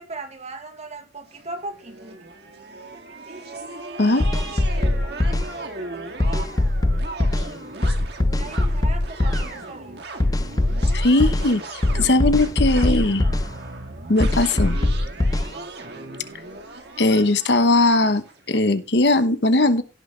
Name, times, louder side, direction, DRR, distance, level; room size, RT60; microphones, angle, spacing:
voice 1, 0.0-2.2 2.9-3.6 4.0-4.4 4.7-5.2 5.7-6.7 8.2-9.9, right 2 dB, 40° right, 1.7 m, -39 dB
sound 1, 1.3-18.4, right 2 dB, 65° right, 2.0 m, -37 dB
sound 2, 4.2-5.5 6.2-7.5 7.8-9.5 10.2-11.5 11.8-13.5 14.2-15.5, left 1 dB, 20° left, 0.4 m, -21 dB
voice 2, 10.9-13.3 14.1-14.8 17.0-19.8, left 2 dB, 65° left, 1.0 m, -19 dB
17.0 x 6.3 x 3.4 m
head